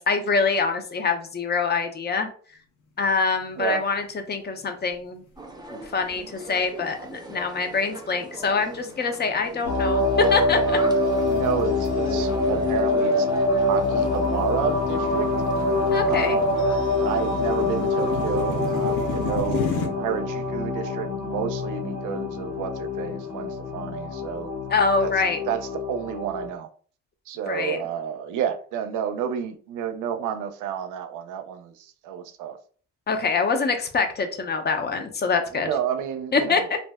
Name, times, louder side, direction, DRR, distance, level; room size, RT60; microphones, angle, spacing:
voice 1, 0.0-2.3 3.0-5.2 5.7-10.8 15.9-16.4 24.7-25.4 27.5-27.8 33.1-35.7 36.3-36.8, left 4 dB, 35° left, 0.6 m, -25 dB
sound 1, 3.4-3.9 4.3-4.4 5.1-5.6 6.2-6.4 7.0-19.9, left 5 dB, 80° left, 0.7 m, -36 dB
sound 2, 5.4-19.3, right 2 dB, 15° right, 0.6 m, -41 dB
sound 3, 9.6-26.5, left 2 dB, 60° left, 1.0 m, -25 dB
voice 2, 11.3-13.3 13.7-15.3 16.1-16.6 17.0-24.5 25.0-25.1 25.4-26.7 27.3-32.6 35.5-36.7, right 8 dB, 85° right, 0.5 m, -30 dB
2.6 x 2.1 x 3.4 m
cardioid pair, 90°, 30 cm